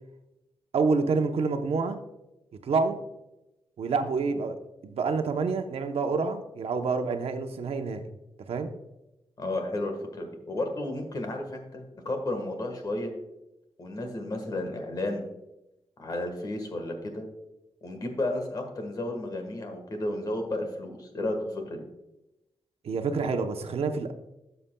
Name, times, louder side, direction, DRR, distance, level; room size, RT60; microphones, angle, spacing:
voice 1, 0.7-2.0 2.6-3.0 3.8-8.0 8.5-8.7 22.8-24.1, right 4 dB, 85° right, 6 dB, 0.8 m, -27 dB
voice 2, 9.4-13.1 13.8-15.3 16.0-17.2 17.8-21.8, left 1 dB, 40° left, 4 dB, 1.4 m, -32 dB
13.0 x 6.8 x 2.2 m, 0.93 s
wide cardioid pair, 180°, 10 cm